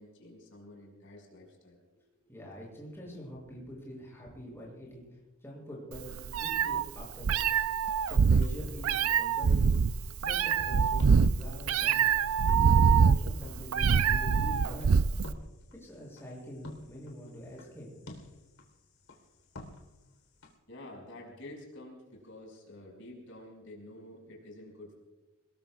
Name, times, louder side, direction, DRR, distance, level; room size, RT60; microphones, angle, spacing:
voice 1, 0.0-1.8 20.7-24.9, left 1 dB, 60° left, -1 dB, 5.7 m, -49 dB
voice 2, 2.2-6.1 6.4-7.4 7.9-9.8 10.2-12.1 12.7-15.0 15.7-17.9 18.2-18.3, equal, 10° left, -4 dB, 7.1 m, -45 dB
Meow, 5.9-15.3, right 6 dB, 75° right, 0.5 m, -24 dB
sound 1, 8.2-20.6, left 1 dB, 75° left, 3.7 m, -53 dB
27.5 x 21.5 x 2.4 m, 1.1 s
head